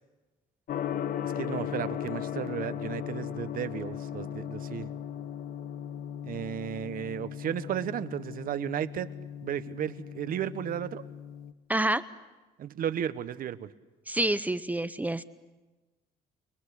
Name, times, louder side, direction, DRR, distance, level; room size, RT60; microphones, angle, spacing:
Gong, 0.7-11.5, left 9 dB, 60° left, 1.1 m, -37 dB
voice 1, 1.2-4.9 6.2-9.1 9.4-11.0 12.6-13.7, right 10 dB, 60° right, 12 dB, 1.2 m, -34 dB
voice 2, 11.7-12.0 14.1-15.2, right 1 dB, 10° right, 12 dB, 0.8 m, -27 dB
29.5 x 20.5 x 8.4 m, 1.2 s
cardioid pair, 110°, 17 cm